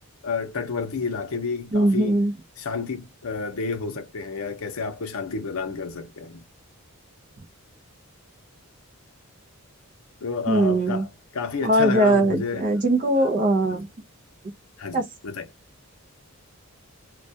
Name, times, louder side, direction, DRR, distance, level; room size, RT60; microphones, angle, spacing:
voice 1, 0.2-2.2 2.6-6.4 10.2-11.1 11.3-12.7 13.7-13.8 14.8-15.5, left 4 dB, 70° left, 0.6 m, -30 dB
voice 2, 1.7-2.3 10.5-11.0 11.6-13.9 14.9-15.1, right 1 dB, 35° right, 0.4 m, -20 dB
2.2 x 2.1 x 2.6 m
head